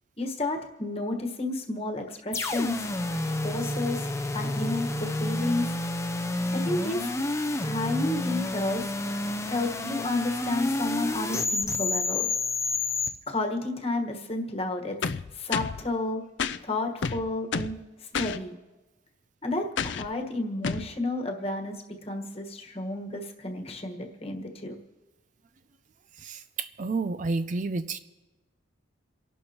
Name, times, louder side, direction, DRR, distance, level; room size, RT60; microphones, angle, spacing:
voice 1, 0.2-2.9 3.4-4.1 4.3-5.7 6.5-7.1 7.6-8.9 9.4-12.3 13.3-16.2 16.6-18.5 19.4-24.7, left 2 dB, 30° left, 3 dB, 1.4 m, -31 dB
sound 1, 2.3-13.1, left 2 dB, 15° left, 0.6 m, -29 dB
sound 2, 15.0-15.8 16.4-16.6 17.0-17.8 18.1-18.4 19.8-20.1 20.6-20.9, left 5 dB, 65° left, 0.4 m, -30 dB
voice 2, 26.2-28.0, right 3 dB, 40° right, 11 dB, 0.4 m, -30 dB
29.0 x 11.5 x 3.0 m, 1.1 s
head